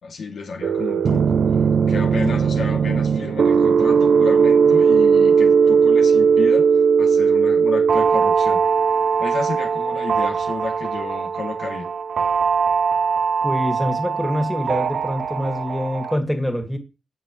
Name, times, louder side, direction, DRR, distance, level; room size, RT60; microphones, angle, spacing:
voice 1, 0.0-1.4 1.9-6.7 7.0-8.6 9.2-11.9, left 4 dB, 80° left, 2.5 m, -31 dB
sound 1, 0.6-16.2, right 6 dB, 70° right, 0.6 m, -18 dB
voice 2, 13.4-16.8, equal, 5° left, 2.2 m, -25 dB
18.0 x 6.5 x 3.2 m
wide cardioid pair, 120°, 0 cm